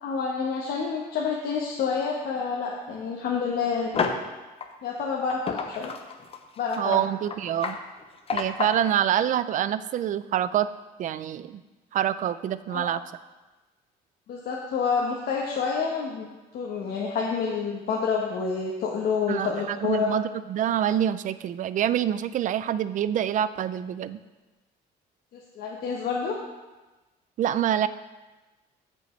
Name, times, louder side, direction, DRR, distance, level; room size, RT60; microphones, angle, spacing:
voice 1, 0.0-4.1 4.8-5.9 6.6-7.0 12.7-12.9 14.3-20.1 25.3-26.4, left 5 dB, 65° left, -2 dB, 1.1 m, -28 dB
sound 1, 3.9-4.3 4.6-4.7 5.3-8.9, left 5 dB, 35° left, 0.7 m, -30 dB
voice 2, 6.8-7.8 8.3-10.7 11.0-11.6 11.9-13.0 19.3-24.2 27.4-27.9, right 10 dB, 50° right, 14 dB, 0.4 m, -26 dB
14.5 x 5.3 x 3.2 m, 1.2 s
cardioid pair, 110°, 17 cm